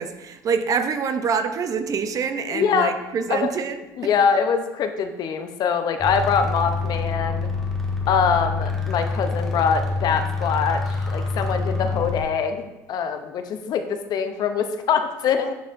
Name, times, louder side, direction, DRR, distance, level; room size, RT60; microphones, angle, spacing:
voice 1, 0.0-3.8, right 6 dB, 45° right, 8 dB, 0.6 m, -25 dB
voice 2, 2.5-2.9 3.3-3.5 4.0-7.5 8.1-12.6 12.9-15.5, left 6 dB, 55° left, 8 dB, 0.6 m, -23 dB
sound 1, 6.0-12.2, left 3 dB, 5° left, 1.4 m, -26 dB
9.3 x 4.2 x 2.5 m, 1.0 s
supercardioid pair, 90°, 8 cm